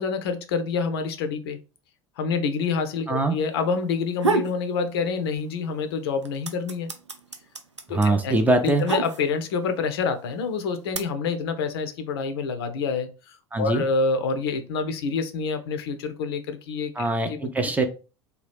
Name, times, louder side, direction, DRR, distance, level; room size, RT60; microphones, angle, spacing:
voice 1, 0.0-1.6 2.2-6.9 7.9-8.3 8.6-16.9, left 5 dB, 60° left, 8 dB, 0.5 m, -27 dB
sound 1, 3.9-4.6 5.0-5.7 6.0-9.6 10.3-11.0, right 4 dB, 85° right, 0.4 m, -28 dB
voice 2, 7.9-8.9 13.5-13.8 17.0-17.8, right 2 dB, 10° right, 6 dB, 0.4 m, -22 dB
2.7 x 2.3 x 3.4 m, 0.33 s
figure-of-eight pair, 75°, 15 cm